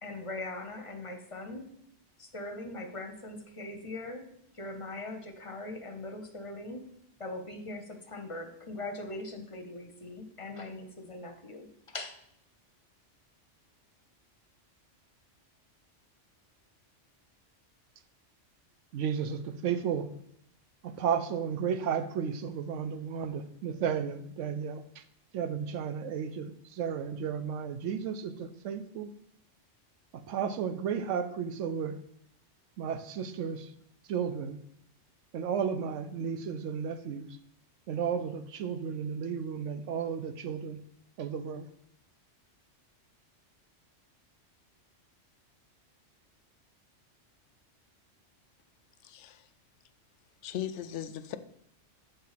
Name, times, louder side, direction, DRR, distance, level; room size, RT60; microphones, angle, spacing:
voice 1, 0.0-1.7 2.2-4.3 4.5-6.9 7.2-12.1, left 2 dB, 30° left, 0.8 m, -41 dB
voice 2, 18.9-20.1 20.8-25.0 25.3-29.1 30.1-32.0 32.8-33.7 34.1-34.6 35.3-37.4 37.9-40.8 41.2-41.7, right 7 dB, 80° right, 1.0 m, -33 dB
voice 3, 49.0-49.5 50.4-51.4, left 10 dB, 75° left, 0.9 m, -38 dB
7.7 x 3.5 x 5.7 m
omnidirectional pair, 1.3 m